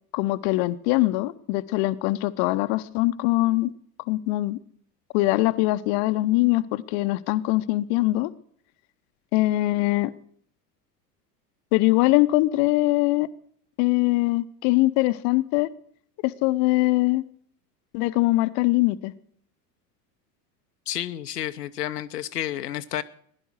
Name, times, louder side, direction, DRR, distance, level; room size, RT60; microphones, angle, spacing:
voice 1, 0.1-3.7 4.1-4.6 5.1-8.3 9.3-10.1 11.7-13.3 13.8-15.7 16.2-17.2 17.9-19.1, left 19 dB, 45° left, 0.8 m, -22 dB
voice 2, 20.9-23.0, left 12 dB, 75° left, 0.8 m, -30 dB
16.5 x 11.0 x 6.5 m
figure-of-eight pair, 80°, 48 cm